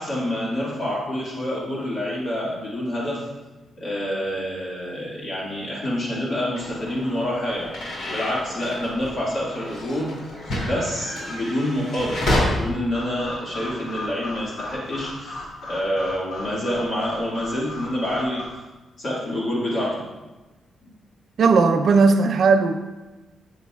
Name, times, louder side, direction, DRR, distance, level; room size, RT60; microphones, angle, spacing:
voice 1, 0.0-3.3 3.8-7.7 8.1-10.2 10.5-18.5 19.0-20.0, left 1 dB, 40° left, -6 dB, 1.9 m, -27 dB
sound 1, 6.6-12.4, left 1 dB, 70° left, 2.6 m, -30 dB
sound 2, 12.9-18.5, left 2 dB, 85° left, 1.9 m, -36 dB
voice 2, 21.4-22.7, right 4 dB, 55° right, 6 dB, 0.6 m, -17 dB
12.5 x 7.1 x 2.4 m, 1.1 s
wide cardioid pair, 155°, 0 cm